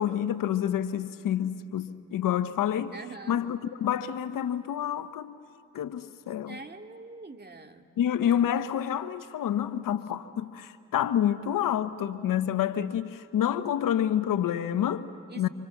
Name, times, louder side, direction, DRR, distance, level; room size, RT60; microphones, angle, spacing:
voice 1, 0.0-2.9 3.3-5.4 5.7-6.6 8.0-15.5, left 10 dB, 80° left, 1.0 m, -28 dB
voice 2, 2.9-3.4 6.5-7.9 15.3-15.5, right 3 dB, 30° right, 2.2 m, -44 dB
28.5 x 26.5 x 7.2 m
supercardioid pair, 45°, 33 cm